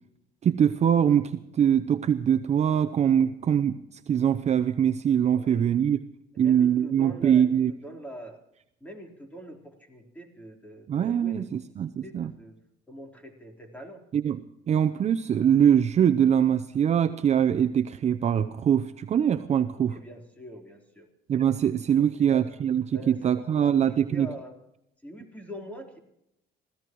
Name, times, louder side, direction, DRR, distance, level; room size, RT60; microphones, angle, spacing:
voice 1, 0.4-6.0 6.4-7.7 10.9-12.3 14.1-20.0 21.3-24.3, right 9 dB, 40° right, 10 dB, 0.6 m, -23 dB
voice 2, 6.3-8.4 8.8-11.5 12.0-12.6 12.9-14.0 19.7-21.1 22.0-22.5 22.9-24.5 25.0-26.0, right 1 dB, 10° left, 3 dB, 3.7 m, -44 dB
25.0 x 16.0 x 3.1 m, 0.80 s
cardioid pair, 110°, 17 cm